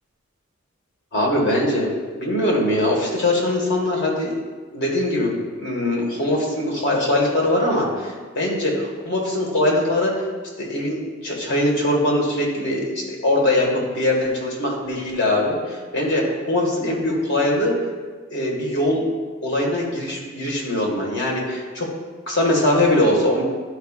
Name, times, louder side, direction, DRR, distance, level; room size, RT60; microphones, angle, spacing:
voice 1, 1.1-4.3 4.7-10.1 10.6-17.7 18.3-19.0 19.4-21.9 22.3-23.4, left 1 dB, 60° left, -2 dB, 1.7 m, -22 dB
11.5 x 4.8 x 2.4 m, 1.4 s
head